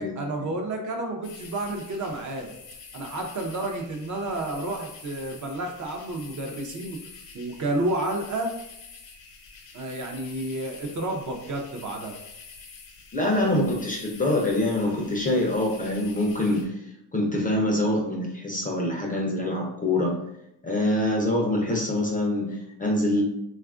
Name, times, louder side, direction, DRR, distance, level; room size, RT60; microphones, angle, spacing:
voice 1, 0.0-2.5 2.9-7.0 7.3-8.5 9.7-12.2, right 2 dB, 45° right, 2 dB, 0.5 m, -30 dB
sound 1, 1.2-16.7, left 5 dB, 85° left, 0.7 m, -47 dB
voice 2, 13.1-16.8 17.1-20.2 20.6-23.2, left 1 dB, 20° left, -1 dB, 0.4 m, -25 dB
3.4 x 2.3 x 2.4 m, 0.81 s
cardioid pair, 135°, 42 cm